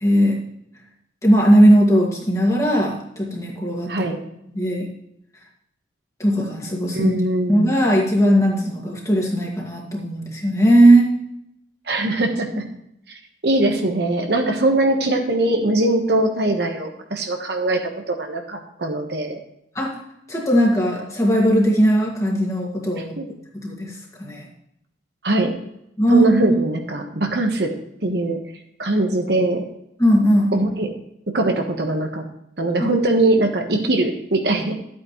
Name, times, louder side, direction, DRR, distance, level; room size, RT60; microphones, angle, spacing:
voice 1, 0.0-0.4 1.2-4.1 4.5-4.9 6.2-7.2 7.5-11.1 19.8-20.0 20.3-23.2 23.5-24.5 26.0-26.5 30.0-30.5 32.8-32.9, right 1 dB, 15° left, -2 dB, 2.1 m, -18 dB
voice 2, 6.9-7.8 11.9-12.7 13.1-19.4 23.2-23.3 25.2-25.6 26.1-27.7 28.0-28.4 28.8-29.6 30.5-30.9 31.3-32.2 32.6-34.7, right 2 dB, 60° right, 4 dB, 1.3 m, -21 dB
12.5 x 8.6 x 3.2 m, 0.78 s
head